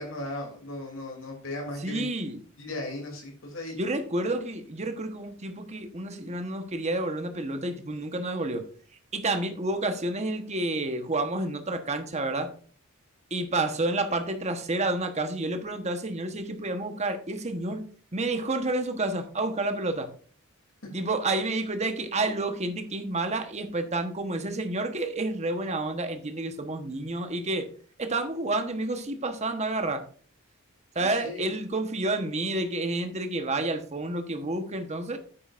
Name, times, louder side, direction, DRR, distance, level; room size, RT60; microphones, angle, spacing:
voice 1, 0.0-2.1 2.6-3.8 31.0-31.5, left 1 dB, 70° left, 0 dB, 2.9 m, -37 dB
voice 2, 1.8-2.4 3.8-8.7 9.1-12.5 13.3-17.8 18.1-20.1 20.9-27.7 28.0-30.0 30.9-35.2, right 2 dB, 35° right, 7 dB, 1.2 m, -29 dB
9.4 x 8.8 x 2.6 m, 0.44 s
head